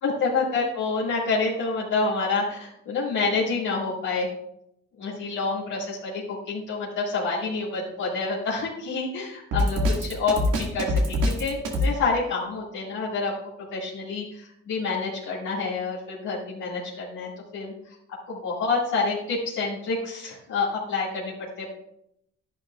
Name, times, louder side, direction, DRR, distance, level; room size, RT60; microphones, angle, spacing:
voice 1, 0.0-4.3 5.0-13.3 13.7-17.9 18.3-21.7, left 4 dB, 80° left, -7 dB, 2.2 m, -28 dB
Drum kit, 9.5-11.9, left 1 dB, 90° right, 2.1 m, -23 dB
11.0 x 10.5 x 2.4 m, 0.79 s
cardioid pair, 90°, 30 cm